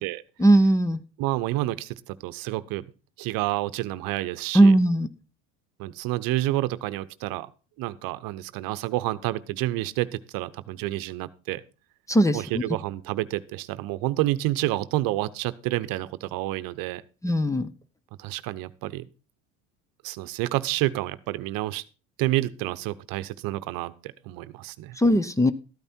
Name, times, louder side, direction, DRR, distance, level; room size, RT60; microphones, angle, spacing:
voice 1, 0.4-1.0 4.5-5.1 12.1-12.6 17.2-17.7 25.0-25.5, right 1 dB, 10° left, 15 dB, 0.7 m, -19 dB
voice 2, 1.2-2.8 3.2-4.7 5.8-7.5 7.8-11.6 12.3-17.0 18.2-19.1 20.0-21.8 22.2-25.0, right 17 dB, 60° right, 14 dB, 0.9 m, -29 dB
13.0 x 8.9 x 4.4 m, 0.34 s
supercardioid pair, 105°, 38 cm